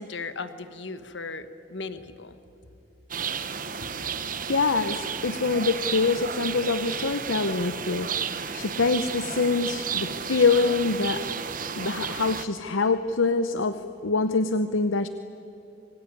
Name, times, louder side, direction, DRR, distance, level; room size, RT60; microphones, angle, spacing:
voice 1, 0.0-2.4, left 3 dB, 70° left, 11 dB, 1.5 m, -37 dB
sound 1, 3.1-12.5, right 6 dB, 45° right, 1.2 m, -32 dB
voice 2, 4.0-11.2 11.8-15.1, left 4 dB, 85° left, 11 dB, 0.9 m, -25 dB
26.0 x 23.0 x 9.7 m, 2.9 s
head